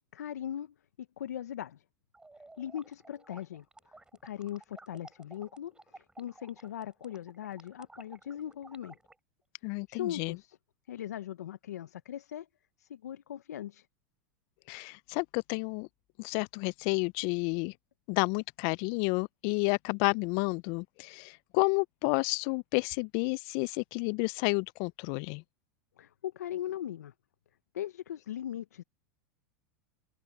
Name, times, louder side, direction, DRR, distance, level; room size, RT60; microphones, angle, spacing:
voice 1, 0.1-1.8 2.6-3.6 4.2-9.0 9.9-10.6 10.9-12.5 12.8-13.9 26.0-27.1 27.7-28.8, left 11 dB, 90° left, 0.8 m, -39 dB
sound 1, 2.1-9.1, right 2 dB, 10° right, 5.6 m, -54 dB
voice 2, 9.6-10.4 14.7-15.9 16.2-17.7 18.1-25.4, left 32 dB, 55° left, 0.4 m, -31 dB
hypercardioid pair, 105°, 9 cm